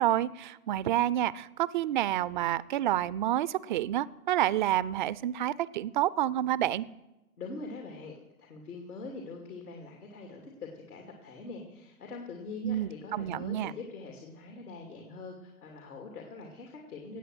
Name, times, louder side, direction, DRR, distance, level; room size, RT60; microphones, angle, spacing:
voice 1, 0.0-6.9 12.6-13.7, right 13 dB, 35° right, 19 dB, 0.4 m, -29 dB
voice 2, 7.4-17.2, left 3 dB, 80° left, 1 dB, 2.8 m, -43 dB
18.5 x 8.0 x 7.8 m, 1.0 s
hypercardioid pair, 125°, 44 cm